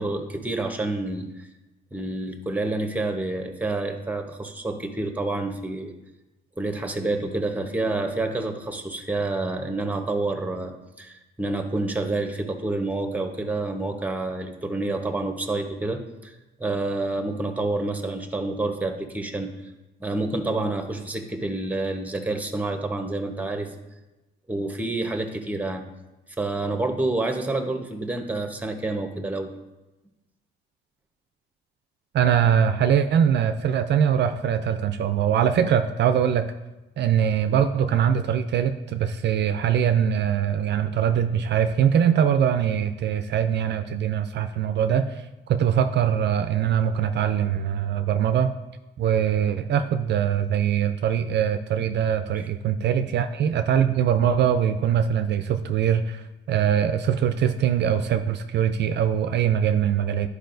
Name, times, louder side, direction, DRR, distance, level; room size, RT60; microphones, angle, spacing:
voice 1, 0.0-1.5 1.9-5.9 6.6-16.3 16.6-19.5 20.0-23.7 24.5-25.8 26.4-29.5 52.3-52.5, right 2 dB, 5° right, 5 dB, 0.9 m, -28 dB
voice 2, 32.1-36.5 37.0-48.5 49.0-60.3, right 8 dB, 60° right, 9 dB, 0.4 m, -22 dB
10.5 x 4.8 x 2.6 m, 1.0 s
cardioid pair, 90°, 20 cm